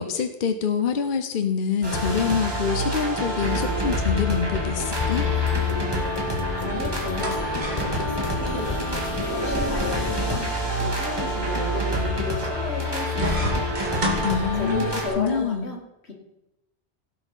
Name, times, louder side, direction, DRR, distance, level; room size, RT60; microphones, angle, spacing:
voice 1, 0.0-5.3 14.2-14.8 15.2-15.7, left 6 dB, 55° left, 7 dB, 0.9 m, -25 dB
sound 1, 1.8-15.1, left 1 dB, 20° right, 2.3 m, -27 dB
sound 2, 3.4-10.5, left 2 dB, 25° left, 1.1 m, -33 dB
voice 2, 5.9-6.2 6.6-7.6 7.9-8.8 9.1-13.7 14.6-16.1, left 3 dB, 85° left, 2 dB, 2.2 m, -34 dB
sound 3, 7.0-15.1, right 1 dB, 45° right, 2.1 m, -33 dB
16.5 x 5.9 x 5.4 m, 0.92 s
omnidirectional pair, 1.1 m